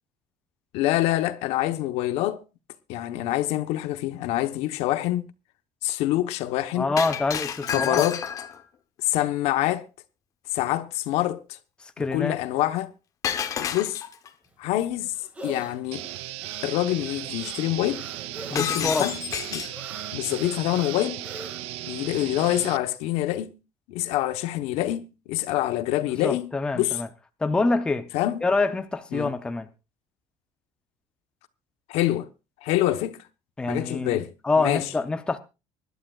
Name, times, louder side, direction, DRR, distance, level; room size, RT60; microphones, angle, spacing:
voice 1, 0.7-2.4 2.9-5.3 5.8-6.9 7.7-8.2 9.0-9.9 10.5-11.6 12.1-12.9 13.6-14.0 14.6-15.2 15.4-16.1 16.6-18.0 18.5-19.2 19.5-19.7 20.1-21.2 21.9-23.6 23.9-27.0 28.1-28.4 29.1-29.3 31.9-32.3 32.6-33.2 33.7-34.9, left 14 dB, 70° left, 1.0 m, -26 dB
voice 2, 6.8-8.0 12.0-12.4 18.5-19.1 26.2-27.1 27.4-28.1 28.4-29.7 33.6-35.4, left 3 dB, 10° left, 0.6 m, -26 dB
Shatter, 7.0-8.6 13.2-14.3 18.6-19.8, left 8 dB, 30° left, 0.9 m, -30 dB
sound 1, 14.5-22.7, right 2 dB, 10° right, 2.0 m, -44 dB
sound 2, 15.9-22.8, right 16 dB, 65° right, 0.6 m, -36 dB
25.0 x 11.5 x 2.4 m
cardioid pair, 180°, 11 cm